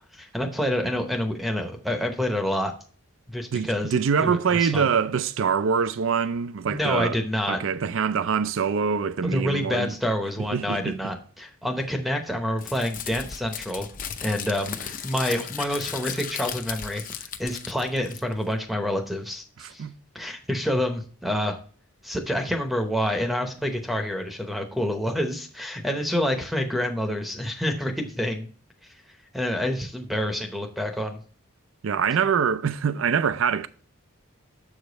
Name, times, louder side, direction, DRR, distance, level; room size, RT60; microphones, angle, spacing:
voice 1, 0.1-2.7 3.3-4.9 6.7-7.6 9.2-13.9 14.2-17.0 17.4-19.8 20.1-21.6 22.0-28.5 29.3-31.2, left 1 dB, ahead, 0.7 m, -28 dB
voice 2, 3.5-7.2 7.5-9.9 10.5-10.9 19.6-19.9 31.8-33.7, right 6 dB, 65° right, 0.4 m, -24 dB
Crumpling crinkling, 12.6-18.5, left 8 dB, 40° left, 0.6 m, -36 dB
7.4 x 5.0 x 4.0 m
head